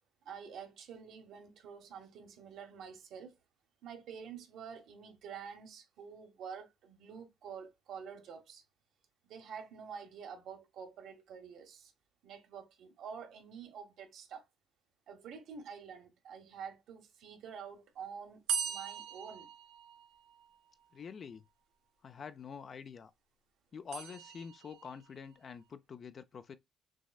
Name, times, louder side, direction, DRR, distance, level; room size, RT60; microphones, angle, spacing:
voice 1, 0.2-3.3 3.8-8.6 9.2-11.9 12.2-14.4 15.1-19.5, right 7 dB, 70° right, 1.2 m, -48 dB
sound 1, 18.5-20.5 23.9-25.0, right 6 dB, 85° right, 0.7 m, -39 dB
voice 2, 20.9-21.4 22.0-23.1 23.7-26.6, left 6 dB, 45° left, 0.4 m, -46 dB
6.1 x 2.1 x 2.3 m
cardioid pair, 85°, 0 cm